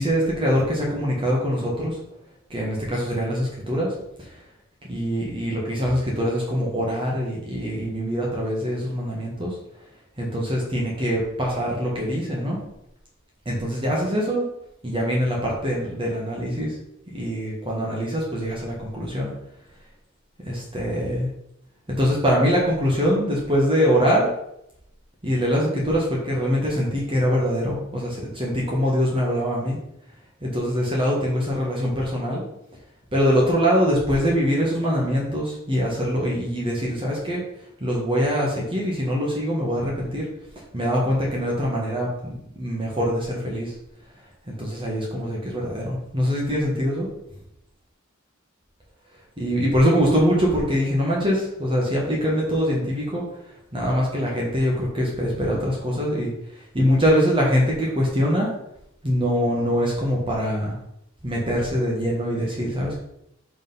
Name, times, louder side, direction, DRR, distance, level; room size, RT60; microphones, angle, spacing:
voice 1, 0.0-2.0 2.5-4.3 4.8-9.6 10.2-12.6 13.4-14.5 14.8-16.7 17.1-19.3 20.4-21.3 22.0-24.3 25.2-29.8 30.4-32.4 33.1-37.4 37.8-40.3 40.7-43.7 44.5-47.1 49.4-53.2 53.7-56.3 56.7-58.5 59.0-60.7 61.2-62.9, equal, 25° right, -4 dB, 1.7 m, -23 dB
5.6 x 5.3 x 5.6 m, 0.79 s
head